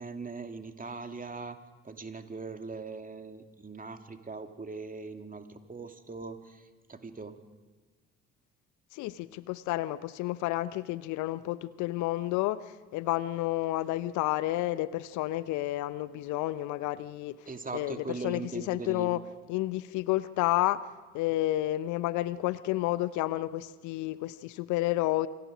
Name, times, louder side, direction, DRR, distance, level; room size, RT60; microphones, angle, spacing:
voice 1, 0.0-1.6 1.8-6.6 6.9-7.3 17.5-19.2, right 4 dB, 25° right, 6 dB, 2.4 m, -40 dB
voice 2, 8.9-17.4 17.7-19.2 19.5-20.9 21.1-25.3, left 16 dB, 65° left, 17 dB, 0.8 m, -30 dB
27.0 x 23.5 x 5.1 m, 1.3 s
figure-of-eight pair, 50°, 32 cm